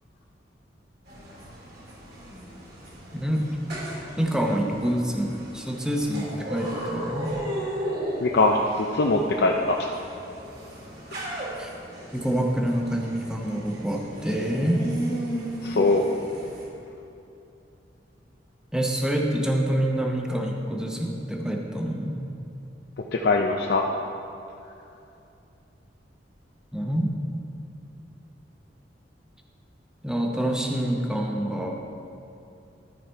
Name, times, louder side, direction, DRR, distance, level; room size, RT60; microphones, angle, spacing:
sound 1, 1.1-16.6, right 1 dB, 60° right, 2.1 m, -36 dB
voice 1, 3.1-3.4 4.2-7.3 11.6-11.7 12.1-14.8 18.7-22.3 26.7-27.2 30.0-31.7, right 1 dB, 5° right, 0 dB, 0.8 m, -26 dB
voice 2, 8.2-9.8 15.6-16.0 23.1-23.9, left 2 dB, 60° left, 1 dB, 0.5 m, -22 dB
12.5 x 5.0 x 4.5 m, 2.7 s
head